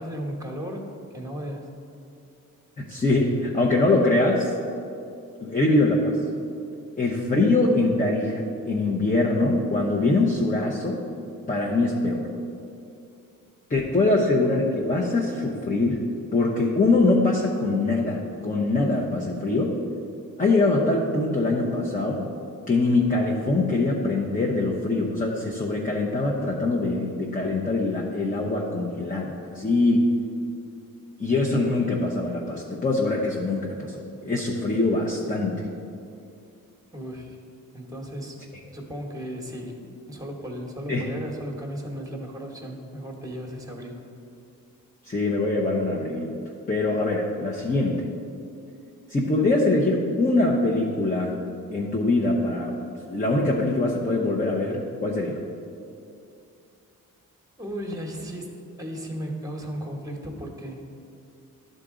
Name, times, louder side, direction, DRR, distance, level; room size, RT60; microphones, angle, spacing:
voice 1, 0.0-1.7 13.9-14.0 36.9-37.4 37.7-38.4 38.7-43.9 57.6-60.8, equal, 10° right, 2 dB, 1.2 m, -35 dB
voice 2, 2.8-4.5 5.4-6.2 7.0-11.0 11.5-12.3 13.7-16.0 16.3-19.8 20.4-22.3 22.7-30.1 31.2-35.7 40.9-41.1 45.0-46.3 46.7-48.1 49.1-51.4 51.7-52.8 53.1-55.4, left 2 dB, 25° left, -1 dB, 0.8 m, -23 dB
11.0 x 3.9 x 3.7 m, 2.5 s
cardioid pair, 70°, 34 cm